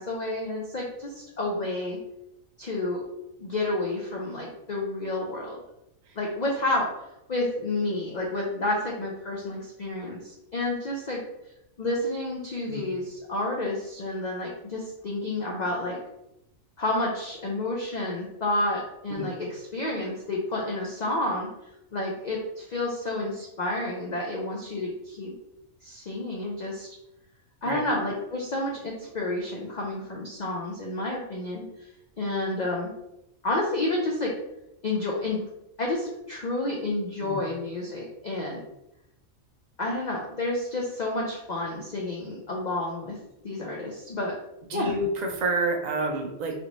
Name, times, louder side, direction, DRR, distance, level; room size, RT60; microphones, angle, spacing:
voice 1, 0.0-2.0 2.6-3.0 3.4-5.6 6.2-6.9 7.3-11.2 11.8-16.0 16.8-21.5 21.9-25.3 25.8-26.9 27.6-31.7 32.2-32.9 33.4-34.3 34.8-35.4 35.8-38.6 39.8-43.2 43.4-44.3 44.7-44.9, left 2 dB, 85° left, -1 dB, 0.4 m, -30 dB
voice 2, 44.7-46.6, right 2 dB, 65° right, 1 dB, 0.4 m, -29 dB
3.4 x 2.5 x 2.9 m, 0.87 s
omnidirectional pair, 1.4 m